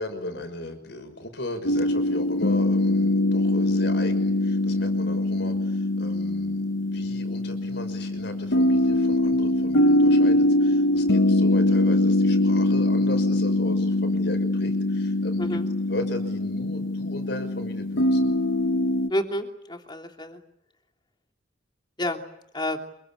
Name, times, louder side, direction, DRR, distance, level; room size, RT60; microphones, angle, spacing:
voice 1, 0.0-15.6 15.9-18.3, left 1 dB, 60° left, 7 dB, 5.8 m, -37 dB
sound 1, 1.7-19.1, left 1 dB, 80° left, 1.2 m, -23 dB
voice 2, 15.4-15.7 19.1-20.4 22.0-22.2 22.5-22.8, left 1 dB, 25° left, 3 dB, 3.0 m, -29 dB
28.0 x 22.5 x 8.7 m, 0.78 s
head